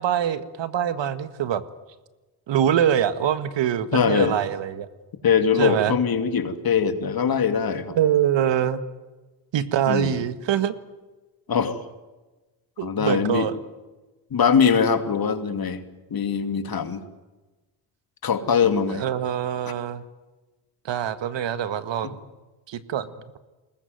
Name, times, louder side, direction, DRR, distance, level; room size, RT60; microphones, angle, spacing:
voice 1, 0.0-1.6 2.5-4.9 5.6-6.0 8.0-8.8 9.5-10.7 12.8-13.6 18.9-20.0 20.8-22.2 22.7-23.1, right 10 dB, 60° right, 12 dB, 1.7 m, -24 dB
voice 2, 3.9-4.4 5.2-8.0 9.9-10.2 11.5-11.8 12.8-13.5 14.3-15.8 16.1-17.0 18.2-19.0 22.0-22.1, left 6 dB, 45° left, 9 dB, 2.6 m, -22 dB
21.5 x 20.0 x 9.4 m, 1.2 s
supercardioid pair, 65°, 48 cm